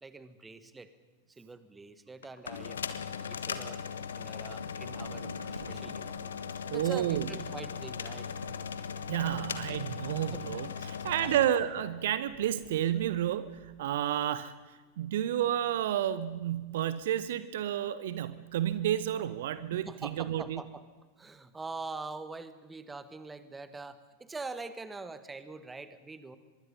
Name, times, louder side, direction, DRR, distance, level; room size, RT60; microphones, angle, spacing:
voice 1, 0.0-0.9 1.4-2.8 3.3-3.8 4.2-6.1 6.7-8.3 9.3-9.4 10.1-10.4 11.2-11.3 19.7-20.9 21.2-26.4, right 3 dB, 10° right, 12 dB, 1.6 m, -44 dB
sound 1, 2.2-11.5, left 7 dB, 65° left, 1.5 m, -39 dB
sound 2, 4.6-13.6 13.9-14.0, right 1 dB, 90° right, 2.2 m, -49 dB
voice 2, 6.7-7.3 9.1-14.5 15.0-20.6, right 11 dB, 55° right, 15 dB, 0.9 m, -31 dB
24.0 x 23.0 x 5.4 m, 1.3 s
figure-of-eight pair, 90°, 0 cm